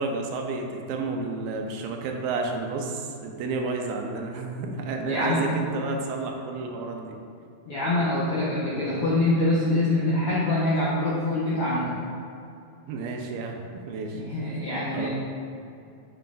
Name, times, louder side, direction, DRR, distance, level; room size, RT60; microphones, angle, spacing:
voice 1, 0.0-7.2 12.9-14.2 14.9-15.1, right 3 dB, 90° right, 2 dB, 2.4 m, -31 dB
voice 2, 5.1-5.4 7.6-11.9 14.1-15.1, left 1 dB, 75° left, -9 dB, 1.3 m, -25 dB
7.6 x 6.5 x 2.5 m, 2.5 s
omnidirectional pair, 4.1 m